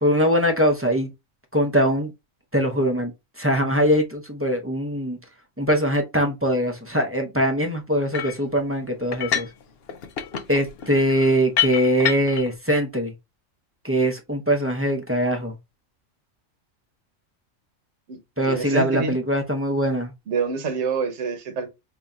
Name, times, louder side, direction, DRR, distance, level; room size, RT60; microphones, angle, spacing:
voice 1, 0.0-1.1 1.5-2.1 2.5-3.1 3.4-5.2 5.6-9.5 10.5-13.1 13.8-15.5 18.4-20.1, equal, 15° right, 0.5 m, -22 dB
sound 1, 8.1-8.4 9.1-9.6 9.9-12.5, left 10 dB, 60° left, 0.7 m, -27 dB
voice 2, 18.5-19.1 20.3-21.7, right 5 dB, 60° right, 1.2 m, -26 dB
5.2 x 2.7 x 2.3 m
omnidirectional pair, 1.4 m